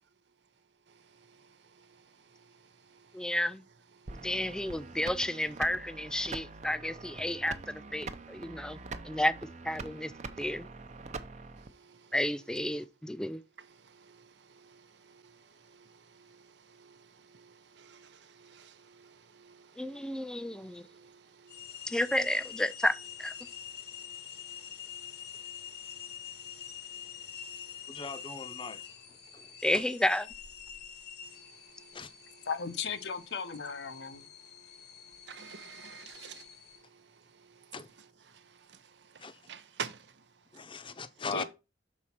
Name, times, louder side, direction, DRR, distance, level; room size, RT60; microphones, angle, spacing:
voice 1, 3.1-3.6 4.1-8.8 9.0-9.3 9.6-10.1 10.4-10.7 12.1-13.4 19.8-20.9 21.9-23.3 29.6-30.3, left 1 dB, 5° left, 0.3 m, -31 dB
sound 1, 4.1-11.7, right 3 dB, 40° right, 0.7 m, -44 dB
sound 2, 21.5-36.8, left 9 dB, 65° left, 1.1 m, -46 dB
voice 2, 27.9-28.8 29.3-29.5 29.7-29.8 31.9-32.1 37.7-37.9 39.2-39.4 40.5-41.4, left 4 dB, 30° left, 0.7 m, -39 dB
voice 3, 32.5-34.2 41.3-41.4, left 6 dB, 85° left, 0.8 m, -36 dB
voice 4, 35.3-36.4 39.5-40.0, right 6 dB, 90° right, 0.7 m, -42 dB
6.3 x 4.1 x 5.8 m
head